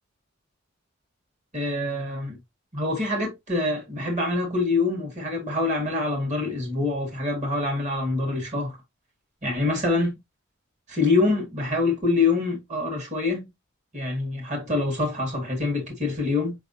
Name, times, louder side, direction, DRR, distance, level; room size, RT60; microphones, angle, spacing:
voice 1, 1.5-2.4 2.7-8.8 9.4-10.2 10.9-13.5 13.9-16.6, left 3 dB, 35° right, 2.0 m, -25 dB
5.5 x 3.4 x 2.7 m
head